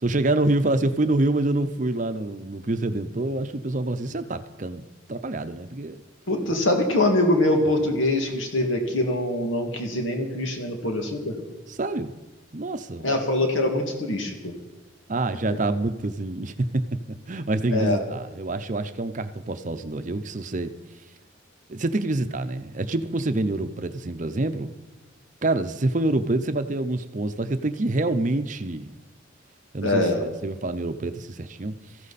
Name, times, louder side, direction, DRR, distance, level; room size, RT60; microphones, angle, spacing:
voice 1, 0.0-4.8 5.1-6.0 11.7-12.1 12.5-13.2 15.1-20.7 21.7-24.7 25.4-29.0 29.7-31.7, right 2 dB, 40° right, 10 dB, 0.7 m, -26 dB
voice 2, 6.3-11.3 13.0-14.5 17.7-18.0 29.8-30.2, left 1 dB, 85° left, 3 dB, 2.1 m, -23 dB
18.5 x 14.5 x 4.2 m, 1.1 s
head